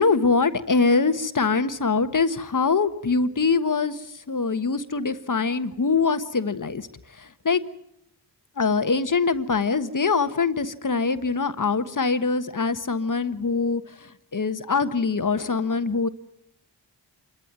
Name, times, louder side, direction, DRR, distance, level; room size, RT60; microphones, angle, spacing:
voice 1, 0.0-6.9 7.2-7.6 8.6-16.1, left 4 dB, 45° left, 10 dB, 1.4 m, -23 dB
27.0 x 13.5 x 9.6 m, 0.79 s
cardioid pair, 45°, 43 cm